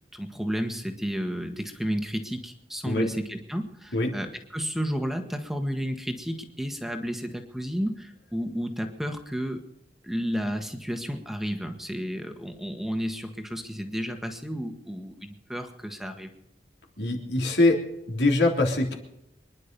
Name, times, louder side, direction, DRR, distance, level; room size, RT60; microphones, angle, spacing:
voice 1, 0.1-9.6 10.0-16.3, equal, ahead, 5 dB, 1.6 m, -32 dB
voice 2, 17.0-17.8 18.1-18.9, left 2 dB, 70° left, 1 dB, 3.3 m, -23 dB
25.0 x 11.0 x 5.4 m, 0.81 s
head